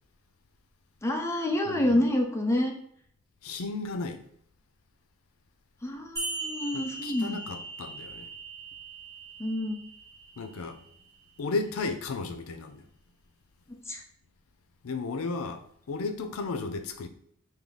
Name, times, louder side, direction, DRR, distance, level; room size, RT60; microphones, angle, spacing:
voice 1, 1.0-2.7 5.8-7.4 9.4-9.8 13.7-14.0, left 1 dB, 15° left, 0.5 m, -28 dB
voice 2, 1.7-2.0 3.4-4.2 6.7-8.3 10.4-10.8 11.4-12.9 14.8-17.1, left 3 dB, 80° left, 0.5 m, -34 dB
sound 1, 6.2-11.2, right 2 dB, 15° right, 1.7 m, -40 dB
3.6 x 2.7 x 3.9 m
head